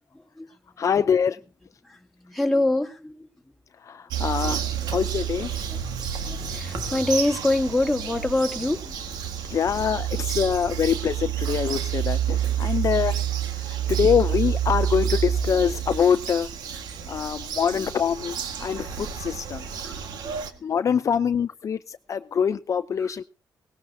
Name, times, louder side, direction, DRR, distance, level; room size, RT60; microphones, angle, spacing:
voice 1, 0.1-0.5 1.8-3.3 4.5-5.0 5.7-5.8 6.2-9.0 12.4-12.8 13.1-13.2 16.7-17.1 18.7-18.9 19.8-20.7 21.0-21.1 23.0-23.1, left 2 dB, 5° left, 1 dB, 2.7 m, -27 dB
voice 2, 0.8-1.4 3.8-4.6 4.9-5.5 9.5-13.1 13.7-16.5 17.1-19.7 20.6-23.2, left 7 dB, 50° left, 11 dB, 0.6 m, -24 dB
Bird vocalization bird call bird song, 4.1-20.5, right 9 dB, 85° right, 1.6 m, -29 dB
18.5 x 17.0 x 2.7 m, 0.33 s
cardioid pair, 90°, 7 cm